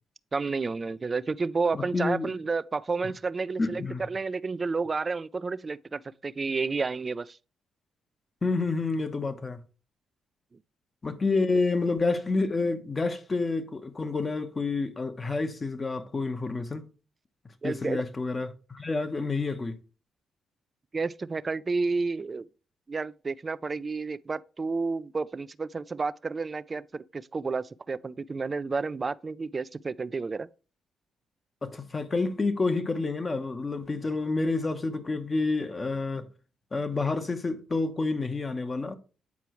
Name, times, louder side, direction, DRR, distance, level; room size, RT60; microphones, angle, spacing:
voice 1, 0.3-7.4 17.6-18.0 20.9-22.5 22.9-30.5, right 4 dB, 35° right, 0.4 m, -31 dB
voice 2, 1.7-2.3 3.6-4.0 8.4-9.6 11.0-16.8 17.6-19.8 31.6-36.3 36.7-39.0, left 3 dB, 35° left, 1.0 m, -29 dB
8.4 x 4.6 x 3.1 m
supercardioid pair, 55°, 0 cm